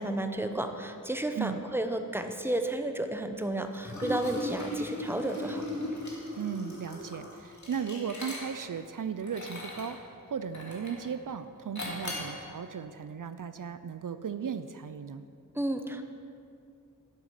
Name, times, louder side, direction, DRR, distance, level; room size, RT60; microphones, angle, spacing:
voice 1, 0.0-5.6 15.5-16.0, right 1 dB, 5° right, 6 dB, 0.8 m, -32 dB
Liquid, 3.7-8.8 9.2-10.0 10.5-11.1 11.8-12.4, left 1 dB, 55° left, 2.4 m, -37 dB
voice 2, 6.4-10.0 10.3-15.2, right 7 dB, 70° right, 11 dB, 0.5 m, -36 dB
12.0 x 7.9 x 5.7 m, 2.4 s
wide cardioid pair, 60°, 34 cm